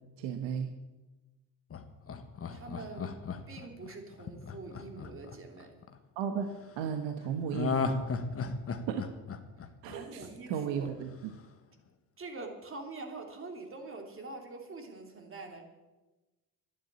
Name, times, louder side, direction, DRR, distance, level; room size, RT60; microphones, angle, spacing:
voice 1, 0.2-0.7 6.2-7.8 8.9-9.0 9.8-11.1, right 7 dB, 75° right, 6 dB, 1.4 m, -34 dB
Laughter, 1.7-5.9 7.5-10.5 10.9-11.0, left 4 dB, 30° left, 1.5 m, -35 dB
voice 2, 2.5-3.1 3.5-5.7 9.8-10.9 12.2-15.6, right 3 dB, 30° right, 3 dB, 3.1 m, -44 dB
12.0 x 10.5 x 8.8 m, 1.1 s
cardioid pair, 110°, 45 cm